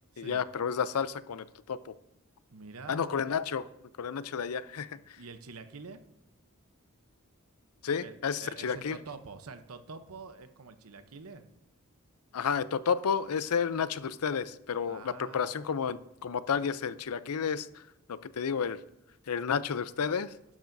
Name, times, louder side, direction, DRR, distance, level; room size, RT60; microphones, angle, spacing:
voice 1, 0.2-1.9 2.9-3.7 4.0-5.2 7.8-9.0 12.3-17.8 18.1-18.8 19.3-20.3, left 6 dB, 90° left, 15 dB, 0.5 m, -31 dB
voice 2, 2.5-3.3 4.9-6.1 8.0-8.1 8.4-11.5 14.9-15.5, right 4 dB, 75° right, 9 dB, 0.9 m, -46 dB
12.0 x 10.5 x 2.7 m, 0.85 s
head